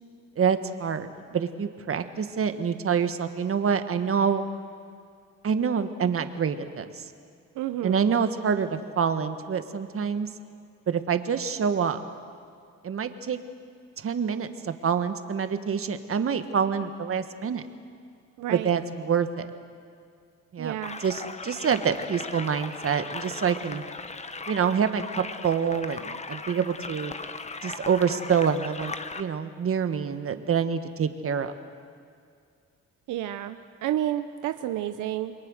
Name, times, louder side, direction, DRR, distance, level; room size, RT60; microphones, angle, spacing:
voice 1, 0.4-4.4 5.4-7.1 7.8-10.3 10.9-12.0 12.8-13.4 14.0-17.6 18.5-19.5 20.5-20.7 21.0-23.8 24.5-27.1 27.6-31.5, right 7 dB, 45° right, 9 dB, 1.6 m, -26 dB
voice 2, 7.6-8.1 18.4-18.7 20.6-21.0 33.1-35.3, right 12 dB, 85° right, 9 dB, 0.9 m, -30 dB
sound 1, 20.8-29.2, left 3 dB, 20° left, 1.2 m, -38 dB
28.0 x 22.0 x 6.5 m, 2.4 s
cardioid pair, 90°, 30 cm